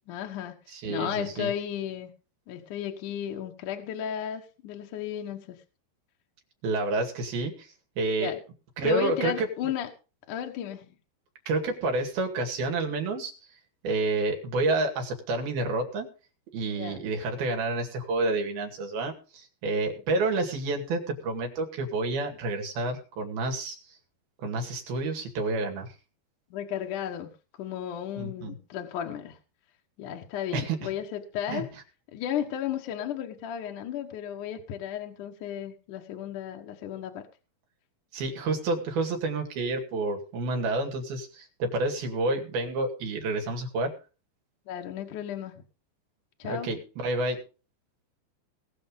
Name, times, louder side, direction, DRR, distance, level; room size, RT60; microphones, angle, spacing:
voice 1, 0.1-0.6 0.9-2.1 2.5-5.6 8.2-8.4 8.8-9.9 10.3-10.9 16.7-17.0 26.5-27.3 27.6-29.4 30.0-31.7 32.1-37.3 44.7-45.5 46.4-46.7, left 9 dB, 65° left, 3 dB, 2.4 m, -34 dB
voice 2, 0.7-1.5 6.6-7.7 8.0-8.3 8.8-9.5 11.5-13.3 13.8-16.1 16.5-23.8 24.4-25.9 28.2-28.5 30.5-30.9 31.5-31.6 38.1-43.9 46.5-47.4, right 2 dB, 70° right, 3 dB, 4.2 m, -29 dB
20.0 x 6.8 x 5.4 m, 0.35 s
omnidirectional pair, 4.5 m